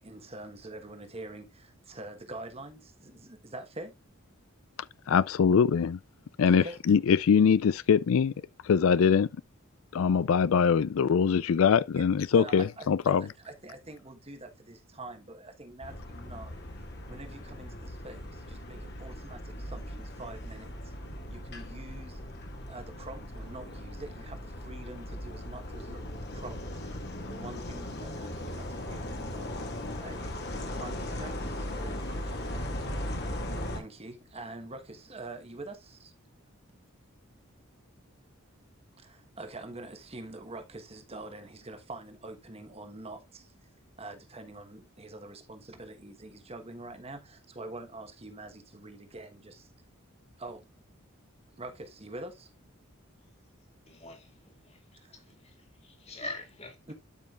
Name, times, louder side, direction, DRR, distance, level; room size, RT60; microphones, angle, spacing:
voice 1, 0.0-4.0 6.5-6.8 12.3-16.7 17.1-20.9 21.3-22.2 22.7-26.7 27.2-29.6 29.9-32.7 33.2-33.3 33.7-36.1 39.0-43.7 44.0-49.7 50.4-50.6 51.6-52.5 55.0-55.2 56.9-57.0, right 2 dB, 30° right, 1.2 m, -45 dB
voice 2, 5.1-6.0 6.4-8.3 8.6-9.3 9.9-13.2, left 6 dB, 75° left, 0.4 m, -23 dB
sound 1, 15.8-33.8, left 1 dB, 50° left, 1.9 m, -38 dB
voice 3, 53.9-54.8 55.1-55.6 55.8-56.9, left 1 dB, 30° left, 2.3 m, -44 dB
12.0 x 5.4 x 2.4 m
head